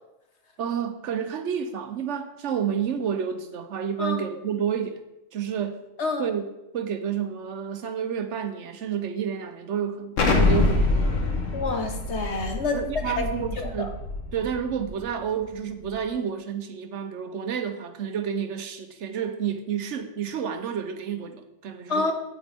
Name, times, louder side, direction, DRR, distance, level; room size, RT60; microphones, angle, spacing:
voice 1, 0.6-5.0 5.3-5.9 6.2-6.4 6.7-11.2 12.7-14.0 14.3-22.1, right 8 dB, 70° right, 8 dB, 1.0 m, -30 dB
voice 2, 6.0-6.3 11.5-12.8 13.2-13.9 21.9-22.1, left 3 dB, 65° left, 4 dB, 1.4 m, -28 dB
Explosion, 10.2-14.9, left 3 dB, 80° left, 1.5 m, -25 dB
8.9 x 8.3 x 3.5 m, 0.89 s
omnidirectional pair, 1.3 m